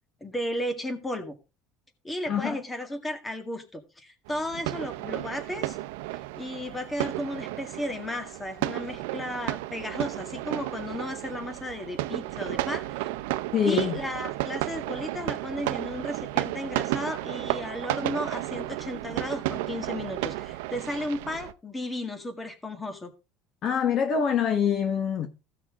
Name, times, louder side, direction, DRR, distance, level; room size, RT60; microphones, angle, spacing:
voice 1, 0.2-1.4 2.0-5.8 6.1-13.1 13.6-23.1, left 1 dB, 10° left, 1.8 m, -34 dB
voice 2, 2.3-2.6 13.5-14.0 23.6-25.3, left 7 dB, 45° left, 1.2 m, -25 dB
sound 1, 4.3-21.5, right 17 dB, 90° right, 0.6 m, -33 dB
15.5 x 5.9 x 3.6 m
cardioid pair, 125°, 0 cm